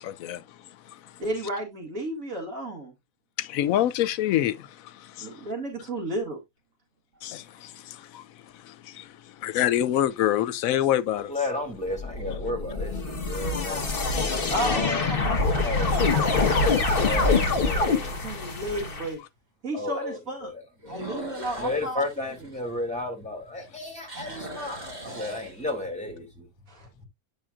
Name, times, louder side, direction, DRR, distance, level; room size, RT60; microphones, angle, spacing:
voice 1, 0.0-1.2 3.4-5.5 7.2-11.3, left 12 dB, 80° left, 1.0 m, -27 dB
voice 2, 1.2-2.9 5.2-6.4 14.5-16.6 17.0-19.2 19.6-20.5 20.8-22.3 26.7-26.9, right 1 dB, 70° right, 2.5 m, -33 dB
sound 1, 7.2-7.8 8.5-8.6 13.8-14.3 14.8-14.9 15.4-15.5 15.8-15.9 17.4-17.5 20.8-23.3 23.7-26.0, right 1 dB, 30° right, 1.8 m, -41 dB
voice 3, 11.3-15.2 15.6-16.0 17.0-18.1 19.7-21.0 21.5-26.5, left 2 dB, 5° left, 2.1 m, -33 dB
sound 2, 12.0-19.1, left 3 dB, 40° left, 1.4 m, -25 dB
8.9 x 5.5 x 2.4 m
omnidirectional pair, 1.5 m